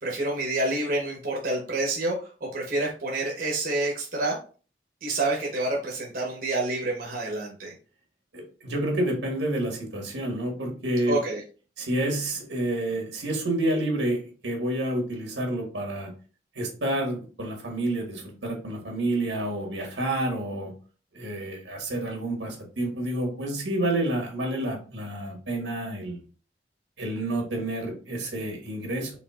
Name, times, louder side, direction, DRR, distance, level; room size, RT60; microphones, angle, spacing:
voice 1, 0.0-4.4 5.0-7.7 11.1-11.4, right 2 dB, 50° right, -2 dB, 1.0 m, -28 dB
voice 2, 8.3-11.2 11.8-16.1 16.5-20.7 21.1-26.2 27.0-29.1, right 1 dB, 90° right, 1 dB, 1.7 m, -29 dB
5.1 x 3.5 x 2.4 m, 0.37 s
head